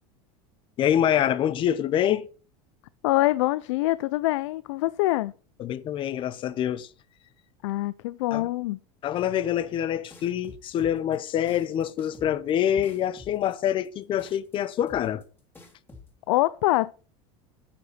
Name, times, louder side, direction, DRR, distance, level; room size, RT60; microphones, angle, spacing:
voice 1, 0.8-2.3 5.6-6.9 8.3-8.5 9.0-15.2, left 10 dB, 35° left, 0.8 m, -26 dB
voice 2, 3.0-5.3 7.6-8.8 16.3-16.9, left 17 dB, 85° left, 0.5 m, -24 dB
sound 1, 10.1-16.1, left 3 dB, 15° left, 2.8 m, -49 dB
10.0 x 8.1 x 5.7 m
supercardioid pair, 140°, 15 cm